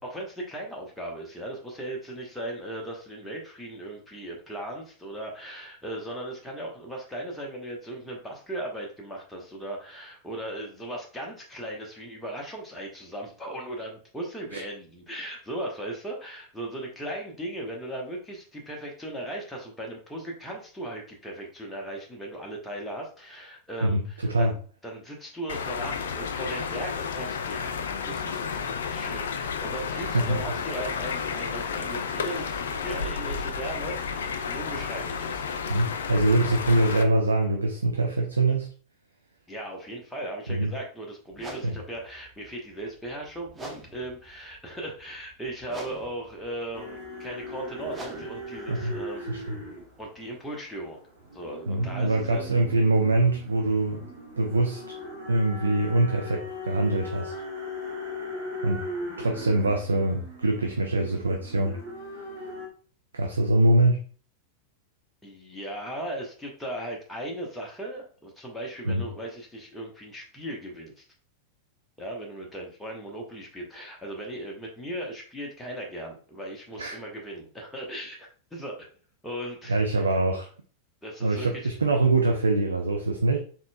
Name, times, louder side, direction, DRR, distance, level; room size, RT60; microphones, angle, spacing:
voice 1, 0.0-24.5 24.8-28.6 28.9-35.4 39.5-49.2 50.0-51.0 51.3-52.4 65.2-71.0 72.0-78.9 79.2-79.8 81.0-81.7, right 1 dB, 5° left, -1 dB, 1.0 m, -37 dB
voice 2, 23.8-24.5 30.1-30.4 35.7-38.7 40.5-40.7 41.6-41.8 48.7-48.9 49.3-49.4 51.7-54.1 54.4-54.8 55.3-57.3 58.6-58.9 59.2-61.8 63.1-64.0 68.9-69.0 76.8-77.0 79.7-80.5 81.2-83.4, right 2 dB, 75° right, 3 dB, 0.4 m, -24 dB
sound 1, 25.5-37.0, left 6 dB, 65° left, 0.4 m, -32 dB
sound 2, 41.3-50.1, right 1 dB, 15° right, 0.8 m, -47 dB
sound 3, 46.7-62.7, left 1 dB, 50° right, 1.2 m, -39 dB
4.2 x 3.7 x 2.3 m, 0.42 s
figure-of-eight pair, 90°, 0 cm